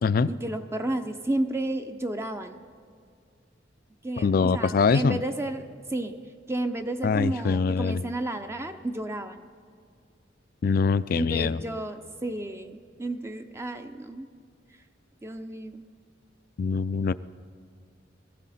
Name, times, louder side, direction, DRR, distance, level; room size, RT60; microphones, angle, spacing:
voice 1, 0.3-2.6 4.0-5.6 5.9-6.1 6.5-9.5 11.1-14.3 15.2-15.8, right 1 dB, 15° right, 7 dB, 0.5 m, -32 dB
voice 2, 4.2-5.2 7.0-8.0 10.6-11.6 16.6-17.1, left 5 dB, 50° left, 17 dB, 0.3 m, -23 dB
22.5 x 14.5 x 4.2 m, 2.1 s
head